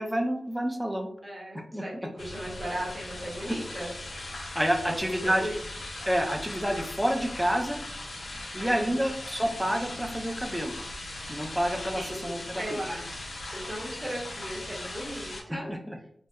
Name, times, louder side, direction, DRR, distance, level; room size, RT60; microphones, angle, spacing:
voice 1, 0.0-1.1 1.7-1.8 3.4-3.6 4.5-5.5 6.1-7.8 8.5-10.7 11.3-12.8 15.5-16.0, equal, 5° right, 3 dB, 0.4 m, -28 dB
voice 2, 1.2-3.9 4.9-5.5 8.6-9.0 11.9-15.7, equal, 25° right, -4 dB, 1.1 m, -37 dB
sound 1, 2.2-15.4, left 2 dB, 75° left, 0.5 m, -39 dB
2.7 x 2.1 x 2.3 m, 0.66 s
cardioid pair, 45°, 0 cm